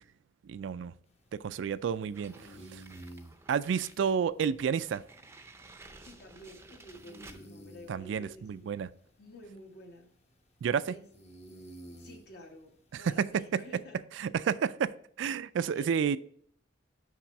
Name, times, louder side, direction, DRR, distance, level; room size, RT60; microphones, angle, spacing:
voice 1, 0.5-0.9 1.3-2.3 2.7-2.8 3.5-5.0 7.9-8.9 10.6-10.9 13.2-13.3 13.5-13.6 14.2-14.9 15.2-16.2, right 7 dB, 70° right, 0.3 m, -30 dB
sound 1, 1.1-13.8, right 1 dB, 35° left, 0.9 m, -54 dB
sound 2, 2.1-4.0 4.4-4.5 4.9-7.5, right 3 dB, 15° right, 0.5 m, -53 dB
voice 2, 6.0-8.7 9.2-10.1 10.8-11.1 12.0-14.0 15.7-15.9, left 1 dB, 55° left, 1.3 m, -51 dB
5.9 x 5.5 x 4.1 m
head